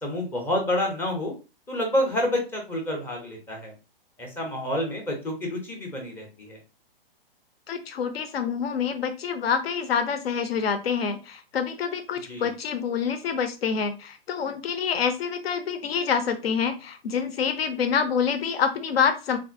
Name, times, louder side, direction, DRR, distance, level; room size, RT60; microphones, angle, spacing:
voice 1, 0.0-1.3 1.7-3.7 4.2-6.6 12.3-12.5, left 1 dB, 10° left, 1 dB, 0.5 m, -28 dB
voice 2, 7.7-19.4, left 6 dB, 80° left, 8 dB, 0.6 m, -27 dB
3.5 x 2.5 x 2.4 m, 0.31 s
hypercardioid pair, 140°, 30 cm